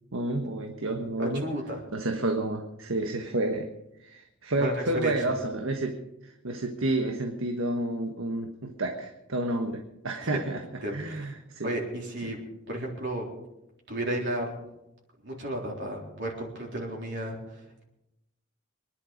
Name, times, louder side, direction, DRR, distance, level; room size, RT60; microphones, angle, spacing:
voice 1, 0.1-1.4 1.9-3.7 4.0-6.0 6.2-10.6 10.9-11.7 12.2-12.3, right 2 dB, 80° right, 4 dB, 1.3 m, -30 dB
voice 2, 1.2-1.8 4.6-5.3 10.8-11.3 11.6-12.4 12.7-13.3 13.9-14.5 15.2-17.6, right 1 dB, 60° right, -1 dB, 3.7 m, -33 dB
24.0 x 11.0 x 5.2 m, 0.89 s
head